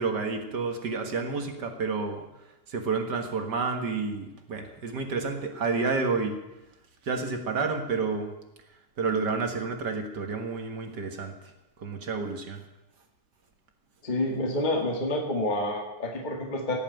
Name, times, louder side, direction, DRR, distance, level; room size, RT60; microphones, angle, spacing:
voice 1, 0.0-2.2 2.7-6.3 7.0-8.3 9.0-11.3 11.8-12.6, right 4 dB, 45° right, 5 dB, 1.6 m, -30 dB
voice 2, 14.0-16.8, left 1 dB, 25° left, 1 dB, 1.1 m, -28 dB
17.0 x 7.4 x 9.0 m, 0.96 s
omnidirectional pair, 3.4 m